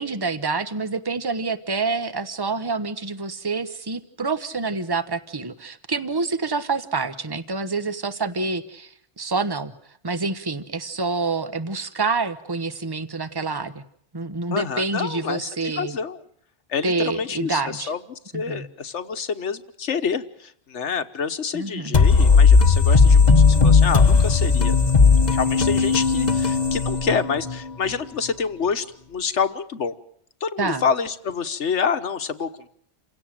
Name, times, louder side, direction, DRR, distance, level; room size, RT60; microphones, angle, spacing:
voice 1, 0.0-9.7 10.0-13.8 14.1-16.0 16.8-17.9 18.3-18.7 21.5-21.9 30.6-30.9, right 3 dB, 20° right, 12 dB, 1.1 m, -27 dB
voice 2, 14.5-16.2 16.7-18.0 18.3-24.8 25.3-29.9 30.4-32.7, left 6 dB, 80° left, 10 dB, 1.5 m, -27 dB
sound 1, 21.9-27.6, left 5 dB, 40° left, 1.3 m, -16 dB
28.5 x 17.0 x 7.6 m, 0.67 s
omnidirectional pair, 1.2 m